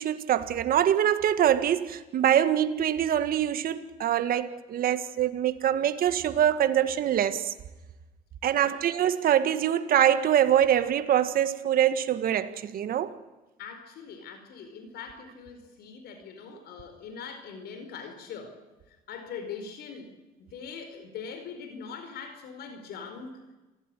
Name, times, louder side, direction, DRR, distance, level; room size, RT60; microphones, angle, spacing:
voice 1, 0.0-7.5 8.4-13.1, right 10 dB, 60° right, 1.8 m, -24 dB
voice 2, 13.6-18.5 18.9-20.1 20.4-23.4, left 6 dB, 70° left, 4.8 m, -42 dB
27.5 x 16.5 x 10.0 m
cardioid pair, 110°, 17 cm